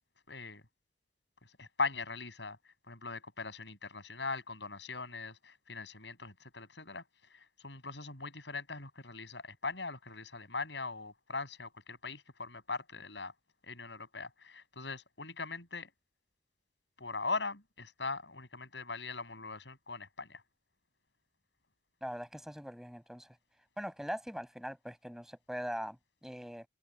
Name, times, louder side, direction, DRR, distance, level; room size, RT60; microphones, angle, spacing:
voice 1, 0.3-0.6 1.6-2.6 2.9-7.0 7.3-13.3 13.6-15.9 17.0-20.4, left 3 dB, 75° left, 7.8 m, -40 dB
voice 2, 22.0-23.4 23.8-26.7, equal, ahead, 7.6 m, -41 dB
open air
head